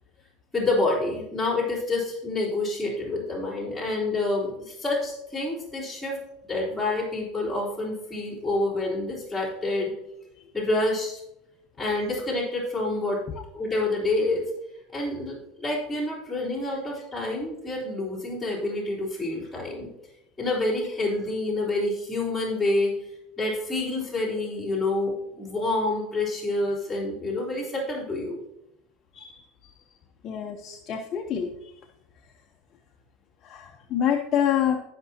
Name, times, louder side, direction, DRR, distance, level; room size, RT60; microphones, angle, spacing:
voice 1, 0.5-6.2 6.5-9.9 10.5-11.2 11.8-13.2 13.5-14.4 14.9-19.9 20.4-22.9 23.4-28.4, left 2 dB, 5° left, -8 dB, 3.5 m, -28 dB
voice 2, 30.2-31.5 33.4-34.8, left 9 dB, 45° left, 3 dB, 0.8 m, -26 dB
17.5 x 6.0 x 2.9 m, 0.86 s
supercardioid pair, 110°, 0 cm